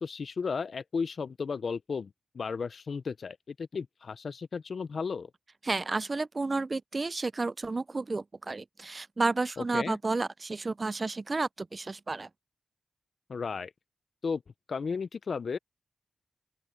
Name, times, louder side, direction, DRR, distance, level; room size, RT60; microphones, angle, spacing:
voice 1, 0.0-5.3 9.6-10.0 13.3-13.7 14.2-14.4 14.7-15.6, left 5 dB, 50° left, 0.5 m, -34 dB
voice 2, 5.6-12.3, right 3 dB, 25° right, 0.3 m, -31 dB
open air
wide cardioid pair, 150°, 0 cm